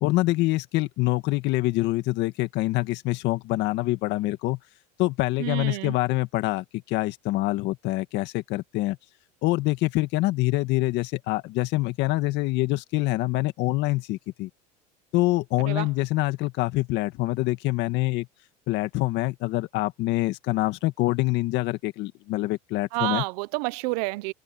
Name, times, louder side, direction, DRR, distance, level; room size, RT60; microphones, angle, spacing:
voice 1, 0.0-4.6 5.0-9.0 9.4-14.5 15.1-18.3 18.7-23.2, left 19 dB, 60° left, 1.9 m, -25 dB
voice 2, 5.4-5.9 15.6-15.9 22.9-24.3, right 25 dB, 70° right, 0.8 m, -29 dB
supercardioid pair, 110°, 21 cm